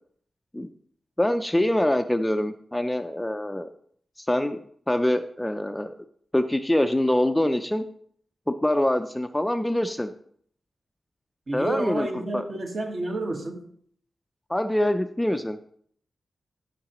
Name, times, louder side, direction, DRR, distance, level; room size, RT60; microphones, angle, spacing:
voice 1, 1.2-3.7 4.2-6.0 6.3-7.8 8.5-10.1 11.5-12.1 12.3-12.4 14.5-15.6, left 1 dB, 10° left, 0.4 m, -24 dB
voice 2, 11.5-13.7, right 2 dB, 45° right, 1.5 m, -30 dB
14.0 x 5.7 x 3.0 m
wide cardioid pair, 125°, 0 cm